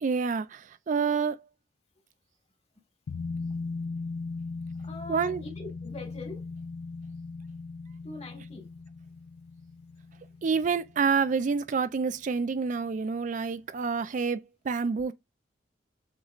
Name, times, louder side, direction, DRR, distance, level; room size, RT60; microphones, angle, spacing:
voice 1, 0.0-1.5 5.1-5.4 10.4-15.1, right 5 dB, 45° right, 0.4 m, -28 dB
sound 1, 3.1-12.2 12.5-12.6, left 4 dB, 65° left, 0.4 m, -39 dB
voice 2, 4.8-6.5 8.0-8.7, left 3 dB, 35° left, 1.6 m, -42 dB
7.1 x 3.1 x 2.4 m
head